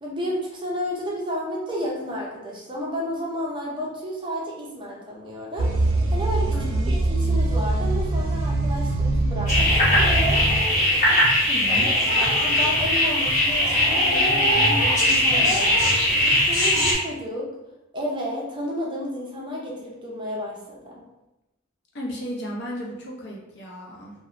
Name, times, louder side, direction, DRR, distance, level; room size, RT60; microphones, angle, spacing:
voice 1, 0.0-5.7 6.1-6.5 6.9-10.1 12.1-17.5 17.9-21.0, equal, 25° right, -3 dB, 0.4 m, -32 dB
sound 1, 5.6-10.6, right 2 dB, 85° right, 0.4 m, -23 dB
voice 2, 6.5-6.9 11.5-11.9 21.9-24.1, equal, 55° left, -2 dB, 0.6 m, -34 dB
sound 2, 9.5-16.9, left 1 dB, 40° left, 1.0 m, -20 dB
3.0 x 2.0 x 2.4 m, 0.95 s
head